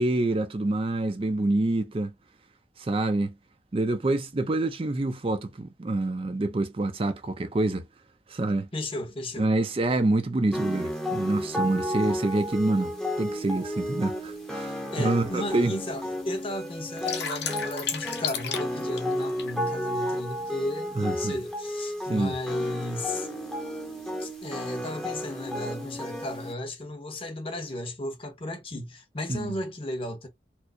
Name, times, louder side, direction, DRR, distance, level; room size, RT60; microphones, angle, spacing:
voice 1, 0.0-2.1 2.8-3.3 3.7-7.9 8.3-8.7 9.4-12.9 13.2-15.7 20.9-21.3 22.1-22.3 29.3-29.5, right 2 dB, 30° right, 0.5 m, -26 dB
voice 2, 8.7-9.5 14.9-23.3 24.2-30.3, left 1 dB, 30° left, 0.9 m, -34 dB
sound 1, 10.5-26.5, left 1 dB, 5° left, 0.7 m, -33 dB
sound 2, 13.7-13.8 14.6-14.7 15.1-15.2 15.4-16.0 16.4-19.5, left 7 dB, 75° left, 0.9 m, -32 dB
4.4 x 2.0 x 2.5 m
head